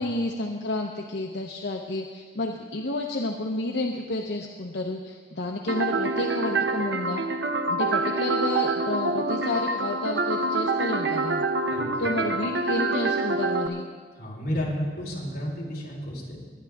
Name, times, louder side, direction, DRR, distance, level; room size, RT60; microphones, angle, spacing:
voice 1, 0.0-7.3 7.7-11.4 12.0-13.9, left 2 dB, 80° left, 1 dB, 0.9 m, -30 dB
sound 1, 5.7-13.7, right 3 dB, 80° right, 0.8 m, -26 dB
voice 2, 11.7-12.1 14.2-16.4, equal, 55° left, -5 dB, 4.1 m, -32 dB
21.0 x 10.5 x 3.6 m, 1.5 s
head